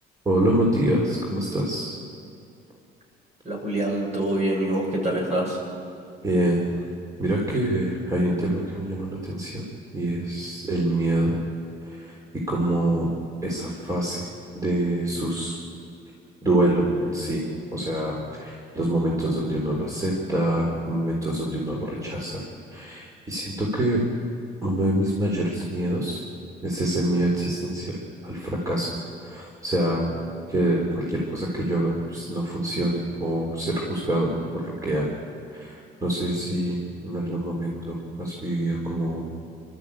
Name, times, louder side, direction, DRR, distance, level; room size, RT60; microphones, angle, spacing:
voice 1, 0.3-1.9 6.2-6.6 7.2-9.6 9.9-11.4 11.8-12.2 12.5-13.1 13.4-14.3 14.6-15.5 16.4-17.4 17.7-22.4 22.7-24.0 24.6-26.2 26.6-28.9 29.2-30.1 30.5-35.0 35.5-36.8 37.0-39.2, right 1 dB, 20° right, -2 dB, 3.8 m, -25 dB
voice 2, 3.4-5.6, right 1 dB, 45° right, 0 dB, 6.7 m, -25 dB
26.5 x 13.0 x 8.7 m, 2.4 s
cardioid pair, 110°, 17 cm